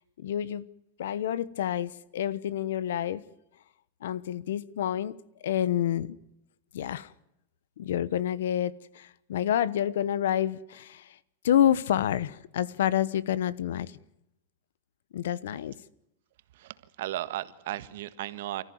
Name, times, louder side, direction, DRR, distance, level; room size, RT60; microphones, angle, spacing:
voice 1, 0.2-0.7 1.0-3.2 4.0-5.2 5.4-6.2 6.7-7.1 7.8-11.2 11.4-14.0 15.1-15.8, left 10 dB, 90° left, 1.1 m, -28 dB
voice 2, 16.5-18.6, right 14 dB, 70° right, 1.5 m, -35 dB
29.0 x 14.5 x 9.5 m
supercardioid pair, 150°, 0 cm